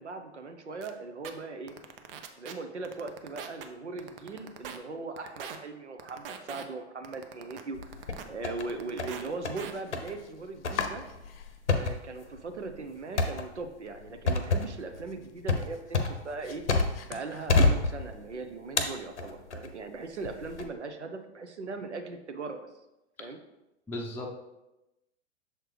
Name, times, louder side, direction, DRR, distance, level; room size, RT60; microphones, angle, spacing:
voice 1, 0.0-1.8 2.4-7.9 8.2-11.0 11.7-16.6 17.1-22.7 23.2-23.4, right 3 dB, 90° right, 7 dB, 0.7 m, -39 dB
sound 1, 0.8-0.9 1.2-1.3 1.7-2.5 2.8-3.6 4.0-4.8 5.2-5.6 6.0-6.6 7.0-8.2 8.6-9.3 9.6-9.7, right 7 dB, 55° right, 0.7 m, -41 dB
sound 2, 7.7-8.7 9.0-9.6 9.9-10.1 10.6-17.1 17.5-18.3 18.8-19.7 20.2-20.6, left 3 dB, 90° left, 0.8 m, -28 dB
Domestic sounds home sounds, 9.3-11.8 12.1-12.9 13.3-13.4 13.8-13.9 14.3-17.9, left 7 dB, 60° left, 0.7 m, -44 dB
voice 2, 23.9-24.3, left 1 dB, 5° left, -2 dB, 0.6 m, -36 dB
6.6 x 4.4 x 3.3 m, 0.96 s
figure-of-eight pair, 100°, 34 cm